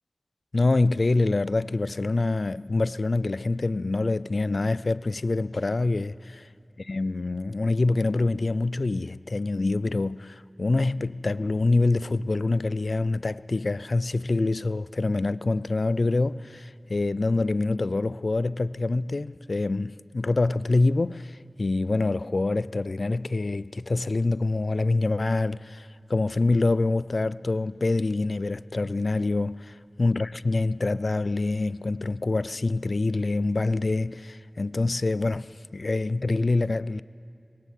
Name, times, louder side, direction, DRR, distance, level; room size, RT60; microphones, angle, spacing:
voice 1, 0.5-6.4 6.8-37.0, left 2 dB, 65° left, 0.4 m, -26 dB
20.0 x 18.0 x 8.3 m
wide cardioid pair, 65°, 0 cm